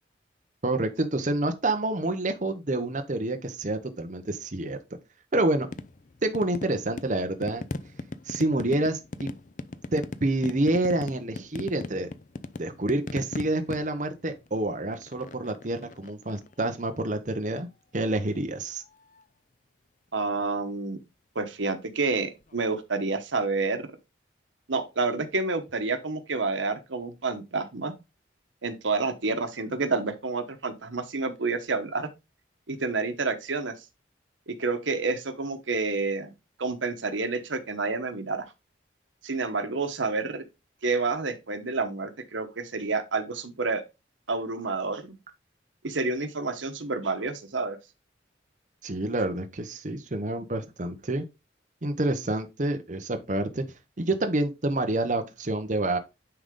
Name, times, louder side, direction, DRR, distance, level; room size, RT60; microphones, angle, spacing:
voice 1, 0.6-4.8 5.3-5.7 6.2-7.6 8.2-9.3 9.9-12.1 12.6-17.7 17.9-18.8 48.8-51.2 51.8-53.6 54.0-56.0, right 2 dB, 40° right, 0.8 m, -28 dB
sound 1, 5.7-17.1 18.8-19.2 22.4-22.6, left 2 dB, 45° left, 0.5 m, -39 dB
voice 2, 20.1-21.0 21.3-23.9 24.7-27.9 28.6-32.1 32.7-33.7 34.5-36.3 36.6-38.4 39.2-40.4 40.8-43.8 44.3-45.1 45.8-47.8, right 3 dB, 85° right, 1.1 m, -29 dB
9.8 x 3.9 x 3.8 m
head